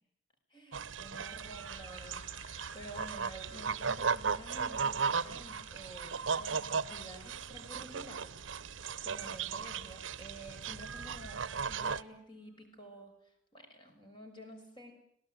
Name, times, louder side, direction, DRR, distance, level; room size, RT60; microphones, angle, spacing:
voice 1, 0.5-8.4 8.7-14.9, right 1 dB, 25° left, 4 dB, 6.1 m, -51 dB
sound 1, 0.7-12.0, right 5 dB, 85° right, 0.9 m, -36 dB
sound 2, 1.7-12.6, left 3 dB, 5° left, 3.3 m, -61 dB
26.0 x 18.5 x 9.2 m, 0.71 s
head